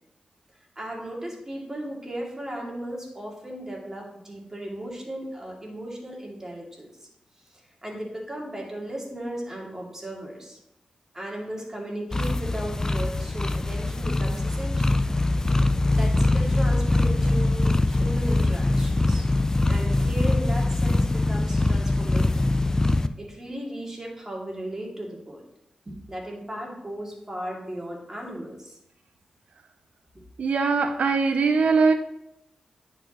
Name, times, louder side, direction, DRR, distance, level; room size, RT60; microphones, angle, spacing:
voice 1, 0.5-6.9 7.5-10.6 11.1-15.0 15.9-19.3 19.7-22.5 23.2-25.4 25.9-28.8 30.1-30.2, right 1 dB, 20° right, -2 dB, 2.3 m, -36 dB
sound 1, 12.1-23.1, left 2 dB, 25° left, 0.4 m, -23 dB
voice 2, 30.4-31.9, right 4 dB, 75° right, 6 dB, 0.5 m, -21 dB
9.9 x 4.7 x 3.0 m, 0.81 s
cardioid pair, 55°, 2 cm